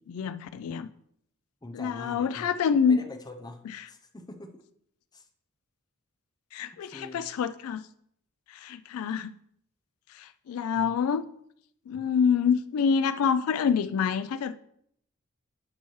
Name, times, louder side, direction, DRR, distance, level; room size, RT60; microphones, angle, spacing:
voice 1, 0.1-0.9 1.7-3.0 6.5-7.8 8.5-9.3 10.1-11.2 11.9-14.5, left 6 dB, 80° left, 0.3 m, -26 dB
voice 2, 1.6-2.6 2.8-4.6 5.1-5.3 6.8-7.3 10.7-10.9, left 1 dB, 20° left, 0.6 m, -44 dB
11.5 x 4.5 x 3.1 m
head